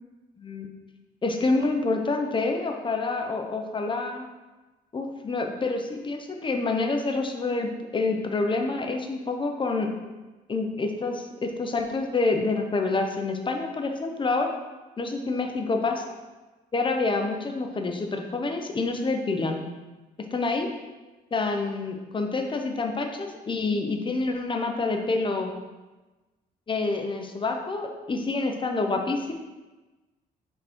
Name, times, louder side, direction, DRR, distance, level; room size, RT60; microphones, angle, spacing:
voice 1, 0.4-0.7 1.2-4.3 4.9-9.9 10.5-14.5 15.0-16.0 16.7-19.6 20.3-20.7 21.3-25.5 26.7-29.3, left 3 dB, 30° left, 4 dB, 1.0 m, -27 dB
6.3 x 3.9 x 4.7 m, 1.2 s
cardioid pair, 85°, 18 cm